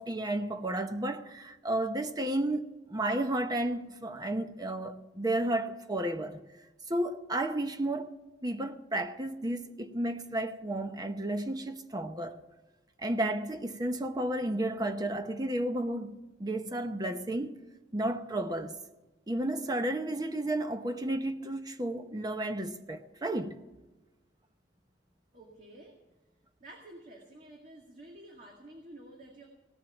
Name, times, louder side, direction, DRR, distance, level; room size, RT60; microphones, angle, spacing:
voice 1, 0.0-6.4 6.9-8.1 8.4-12.4 13.0-17.6 17.9-18.8 19.3-23.6, right 1 dB, 25° right, 0.8 m, -32 dB
voice 2, 25.3-25.9 26.6-29.5, right 1 dB, 50° right, 2.1 m, -50 dB
17.5 x 7.5 x 8.7 m
head